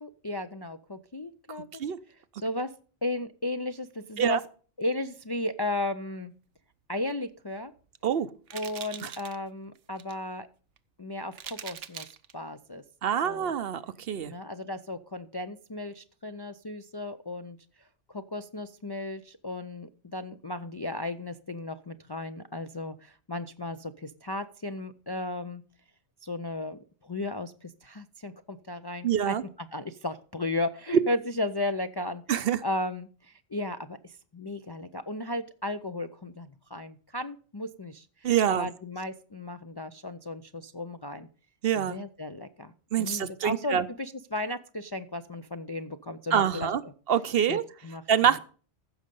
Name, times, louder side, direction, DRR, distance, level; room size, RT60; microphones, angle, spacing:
voice 1, 0.0-2.7 3.0-4.4 4.8-6.3 6.9-7.7 8.5-10.5 11.0-12.8 13.2-13.5 14.3-25.6 26.2-29.4 29.7-41.3 41.8-42.7 43.0-46.7 47.5-48.3, left 2 dB, 35° left, 8 dB, 0.4 m, -35 dB
sound 1, 7.5-7.8 8.5-9.4 9.8-10.2 10.8-10.9 11.3-12.3, right 9 dB, 80° right, 1.1 m, -42 dB
voice 2, 13.0-14.3 29.0-29.4 32.3-32.6 38.2-38.7 41.6-42.0 42.9-43.9 46.3-46.8 47.1-47.6 48.1-48.4, right 9 dB, 60° right, 15 dB, 0.8 m, -25 dB
15.0 x 6.5 x 5.3 m, 0.40 s
omnidirectional pair, 1.2 m